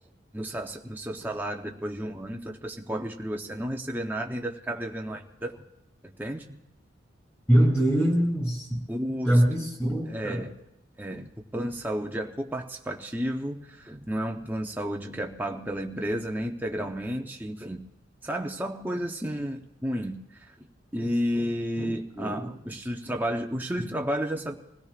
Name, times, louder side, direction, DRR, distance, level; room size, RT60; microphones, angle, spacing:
voice 1, 0.3-5.7 6.2-6.6 8.9-9.4 10.1-10.5 11.0-17.8 18.2-20.6 20.9-24.5, equal, 10° right, 1 dB, 0.7 m, -32 dB
voice 2, 7.5-8.8 9.3-10.4 21.8-21.9 22.2-22.5, right 1 dB, 10° left, -4 dB, 7.0 m, -23 dB
25.5 x 17.0 x 2.4 m, 0.85 s
head